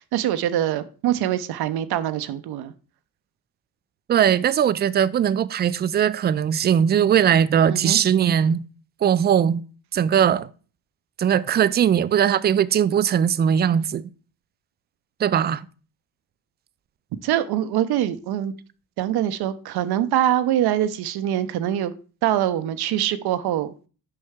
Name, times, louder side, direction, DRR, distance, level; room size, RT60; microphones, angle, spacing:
voice 1, 0.0-2.7 7.7-8.0 17.2-18.5 19.0-21.9 22.2-23.7, right 11 dB, 65° right, 0.7 m, -24 dB
voice 2, 4.1-8.6 9.0-9.6 9.9-10.5 11.2-14.1 15.2-15.7, right 8 dB, 25° right, 0.4 m, -20 dB
6.6 x 5.3 x 3.5 m
supercardioid pair, 70°, 42 cm